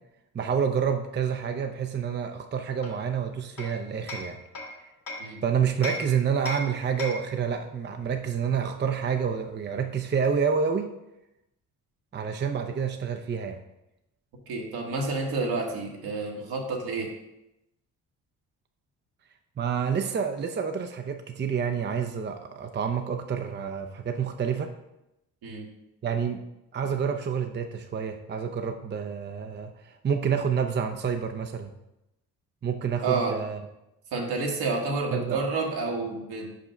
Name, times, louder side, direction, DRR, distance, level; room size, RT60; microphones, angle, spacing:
voice 1, 0.3-4.4 5.4-10.9 12.1-13.6 19.6-24.7 26.0-26.4 26.7-31.7 32.6-33.6 35.1-35.4, right 7 dB, 30° right, 6 dB, 0.6 m, -28 dB
Hammer, 2.8-5.3 5.8-7.4, left 2 dB, 65° left, 2.0 m, -37 dB
voice 2, 14.5-17.1 25.4-25.7 33.0-33.4 34.1-36.5, right 3 dB, 70° right, 0 dB, 1.6 m, -29 dB
5.3 x 5.1 x 5.1 m, 0.91 s
supercardioid pair, 65°, 38 cm